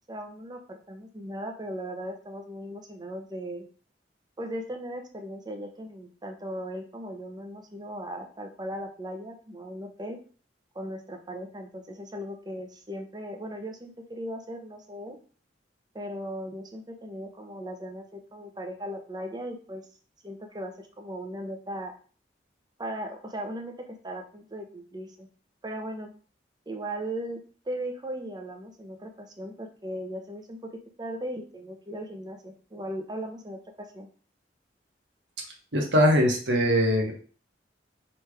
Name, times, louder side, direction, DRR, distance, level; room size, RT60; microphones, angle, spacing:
voice 1, 0.1-3.6 4.4-10.2 10.7-15.2 15.9-19.8 20.2-21.9 22.8-25.3 25.6-26.1 26.7-27.4 27.7-33.6 33.9-34.1, equal, 25° right, 4 dB, 0.7 m, -37 dB
voice 2, 35.7-37.1, equal, 85° right, 1 dB, 1.2 m, -21 dB
3.2 x 3.1 x 4.8 m, 0.40 s
head